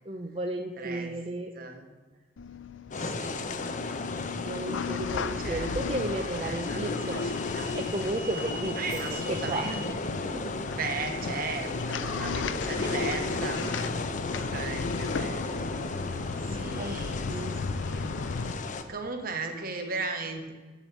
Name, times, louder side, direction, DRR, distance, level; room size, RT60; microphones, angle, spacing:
voice 1, 0.0-1.5 4.4-7.3 7.7-10.6 16.8-17.0 17.3-17.5 18.3-18.4, right 2 dB, 30° right, 4 dB, 0.6 m, -34 dB
voice 2, 0.8-1.1 1.5-1.9 2.9-3.5 5.4-7.7 8.8-10.0 10.7-13.9 14.5-15.7 16.5-18.2 18.9-20.5, right 4 dB, 50° right, 5 dB, 1.3 m, -37 dB
sound 1, 2.4-18.5, left 5 dB, 85° left, 0.5 m, -36 dB
sound 2, 2.9-18.8, left 3 dB, 40° left, 0.7 m, -35 dB
sound 3, 4.8-4.9 5.8-9.9, right 2 dB, 80° right, 2.1 m, -43 dB
7.2 x 7.2 x 8.0 m, 1.3 s
head